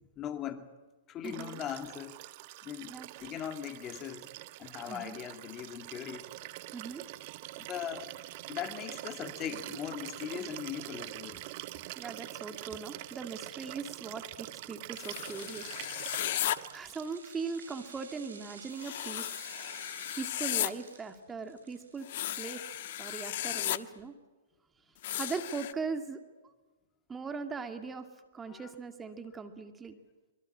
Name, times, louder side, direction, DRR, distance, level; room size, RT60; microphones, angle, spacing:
voice 1, 0.2-0.7 1.1-2.2 2.6-4.3 4.6-6.3 7.6-8.1 8.5-11.4 28.5-28.7, left 9 dB, 25° left, 2.3 m, -40 dB
voice 2, 1.2-1.6 2.9-3.1 4.9-5.2 6.7-7.0 12.0-16.4 16.7-19.3 20.2-22.1 22.4-22.6 23.0-24.1 25.2-26.5 27.1-28.1 28.3-30.0, right 5 dB, 15° right, 2.3 m, -40 dB
Liquid, 1.2-17.3 18.6-18.7, right 18 dB, 45° right, 1.1 m, -45 dB
sound 1, 14.9-16.6 18.8-20.7 22.0-23.8 25.0-25.7, left 13 dB, 55° left, 1.3 m, -35 dB
sound 2, 16.0-23.2 23.5-23.6, right 4 dB, 75° right, 6.7 m, -52 dB
25.5 x 23.0 x 8.7 m
hypercardioid pair, 120°, 0 cm